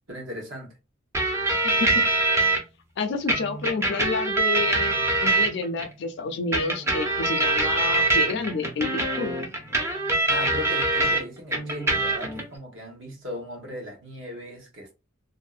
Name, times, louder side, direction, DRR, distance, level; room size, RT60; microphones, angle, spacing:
voice 1, 0.1-0.7 10.3-14.9, equal, 65° right, 0.9 m, -37 dB
sound 1, 1.1-2.6 3.3-5.9 6.5-11.2 11.5-12.4, right 2 dB, 15° right, 0.4 m, -24 dB
voice 2, 1.6-2.0 3.0-9.3, left 3 dB, 60° left, 0.4 m, -29 dB
2.6 x 2.0 x 2.3 m
head